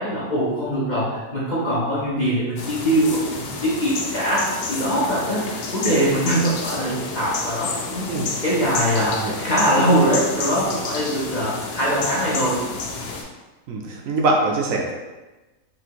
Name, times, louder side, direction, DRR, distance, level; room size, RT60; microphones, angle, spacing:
voice 1, 0.0-8.1 8.4-12.6, equal, 40° left, -7 dB, 0.7 m, -22 dB
sound 1, 2.6-13.2, left 4 dB, 85° left, 1.2 m, -30 dB
voice 2, 13.7-14.9, right 2 dB, 65° right, 0 dB, 1.0 m, -23 dB
4.2 x 2.7 x 2.9 m, 1.1 s
omnidirectional pair, 1.6 m